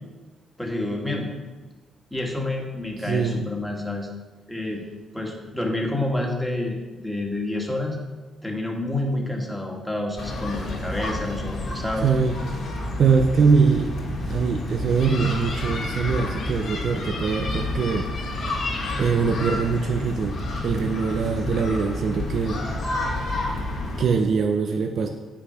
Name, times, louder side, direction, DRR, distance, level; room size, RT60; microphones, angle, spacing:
voice 1, 0.6-1.3 2.1-4.1 4.5-4.8 5.1-8.0 8.4-12.1, left 2 dB, 5° left, 0 dB, 1.8 m, -28 dB
voice 2, 3.0-3.4 12.0-12.3 13.0-13.9 14.3-18.1 18.4-18.6 19.0-20.4 20.6-22.6 24.0-25.1, right 5 dB, 60° right, 4 dB, 0.7 m, -22 dB
sound 1, 10.2-24.0, left 2 dB, 60° left, 2.6 m, -30 dB
8.0 x 6.3 x 5.7 m, 1.2 s
cardioid pair, 95°, 0 cm